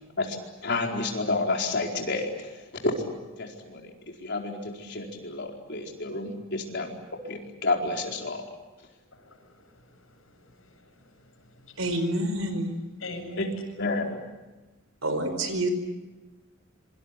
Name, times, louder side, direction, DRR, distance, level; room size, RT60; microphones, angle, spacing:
voice 1, 0.6-2.6 2.8-3.1 3.4-6.9 7.2-8.5 13.8-14.2, left 2 dB, 60° left, 2 dB, 4.5 m, -30 dB
voice 2, 9.1-11.8 13.0-13.6, left 2 dB, 75° left, 4 dB, 7.7 m, -43 dB
voice 3, 11.8-12.7 15.0-15.7, right 1 dB, 90° right, 9 dB, 4.9 m, -27 dB
26.5 x 25.0 x 8.5 m, 1.2 s
head